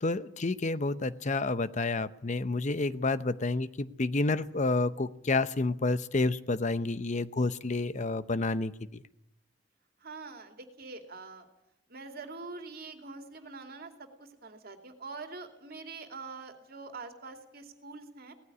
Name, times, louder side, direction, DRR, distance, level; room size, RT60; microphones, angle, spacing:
voice 1, 0.0-9.0, left 3 dB, 40° left, 14 dB, 0.7 m, -29 dB
voice 2, 10.0-11.5 11.9-18.3, right 3 dB, 50° right, 6 dB, 2.6 m, -44 dB
18.5 x 14.5 x 9.7 m, 0.81 s
head